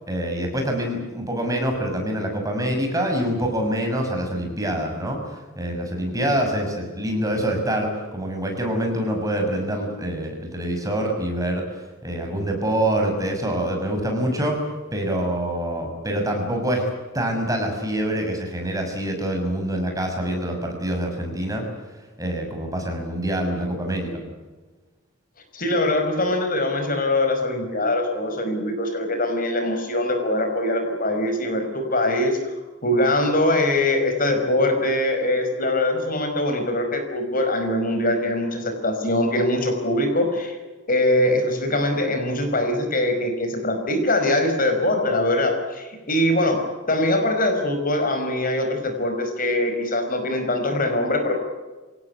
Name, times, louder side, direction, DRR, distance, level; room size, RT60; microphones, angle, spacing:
voice 1, 0.1-14.6 14.9-16.9 17.1-21.6 22.2-24.2, right 1 dB, 15° right, 2 dB, 6.3 m, -25 dB
voice 2, 25.5-32.5 32.8-40.6 40.9-46.6 46.9-51.3, left 1 dB, 45° left, 5 dB, 5.1 m, -22 dB
26.5 x 18.0 x 9.5 m, 1.3 s
head